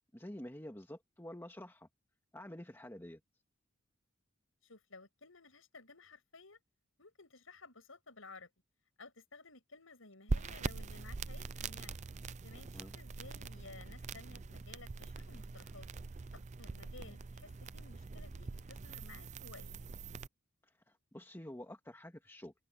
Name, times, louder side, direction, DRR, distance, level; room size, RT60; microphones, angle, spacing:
voice 1, 0.1-1.9 2.3-3.2 12.6-12.9 20.6-22.5, left 1 dB, 10° left, 2.0 m, -49 dB
voice 2, 4.6-6.6 7.0-8.5 9.0-12.0 12.4-15.9 16.3-19.8, left 3 dB, 80° left, 6.5 m, -56 dB
sound 1, 10.3-20.3, right 3 dB, 35° right, 0.5 m, -43 dB
head